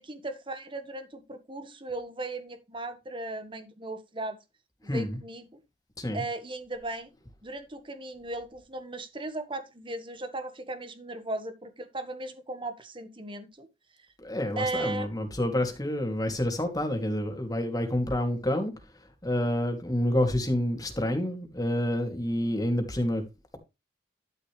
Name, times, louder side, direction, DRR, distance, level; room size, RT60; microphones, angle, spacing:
voice 1, 0.0-4.4 4.8-5.5 6.1-7.1 7.4-13.7 14.6-15.1, right 2 dB, 30° right, 1.6 m, -37 dB
voice 2, 4.8-5.2 6.0-6.2 14.2-18.7 19.2-23.2, left 1 dB, 20° left, 2.7 m, -28 dB
12.0 x 6.7 x 3.3 m
head